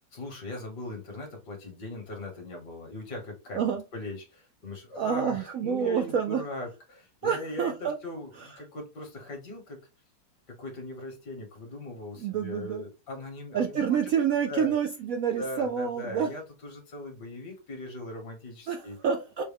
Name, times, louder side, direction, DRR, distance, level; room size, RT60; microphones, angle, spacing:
voice 1, 0.1-9.8 10.5-14.1 14.5-14.8 15.4-19.0, left 1 dB, 65° left, 2 dB, 2.0 m, -39 dB
voice 2, 4.9-6.4 7.2-8.0 8.4-8.5 12.2-12.8 13.5-16.3 18.7-19.4, right 7 dB, 70° right, 4 dB, 0.8 m, -28 dB
6.2 x 2.2 x 3.4 m, 0.29 s
omnidirectional pair, 1.9 m